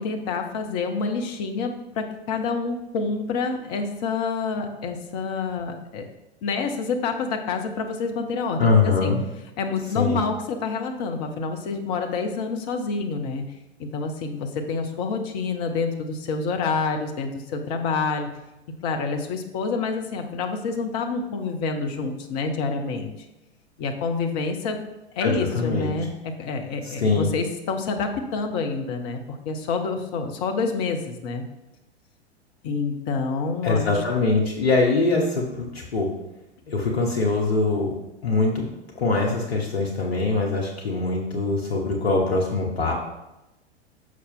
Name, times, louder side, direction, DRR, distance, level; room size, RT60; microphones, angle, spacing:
voice 1, 0.0-6.1 6.4-9.1 9.6-13.4 13.8-18.3 18.8-23.1 23.8-24.8 25.2-31.5 32.6-34.0, left 4 dB, 40° left, 4 dB, 0.9 m, -28 dB
voice 2, 8.6-9.2 9.9-10.2 25.2-25.9 26.8-27.3 33.6-36.1 36.7-37.9 38.2-38.7 38.9-42.9, left 3 dB, 65° left, -1 dB, 1.1 m, -23 dB
6.4 x 5.7 x 3.6 m, 0.97 s
figure-of-eight pair, 95°, 33 cm